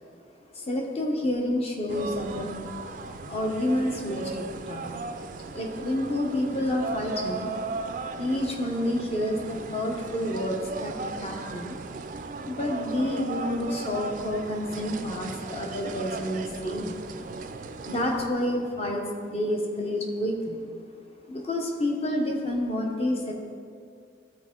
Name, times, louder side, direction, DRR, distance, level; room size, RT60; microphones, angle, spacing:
voice 1, 0.5-5.0 5.4-7.5 8.2-10.9 11.2-11.8 12.4-17.0 17.3-17.4 17.9-20.7 21.3-23.3, left 1 dB, 30° left, 1 dB, 0.9 m, -29 dB
sound 1, 1.9-18.3, right 3 dB, 45° right, 0.4 m, -37 dB
13.0 x 4.4 x 3.8 m, 2.3 s
head